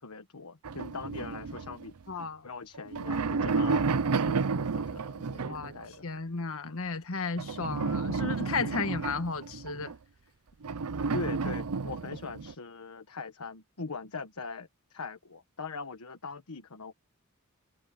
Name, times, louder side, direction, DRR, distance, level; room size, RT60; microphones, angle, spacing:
voice 1, 0.0-6.1 11.1-16.9, left 4 dB, 85° left, 1.3 m, -41 dB
sound 1, 0.6-2.2 2.8-5.9 7.4-10.0 10.6-12.5, right 4 dB, 85° right, 0.6 m, -31 dB
voice 2, 2.1-2.5 5.4-5.7 6.0-9.9, left 4 dB, 65° left, 1.5 m, -34 dB
head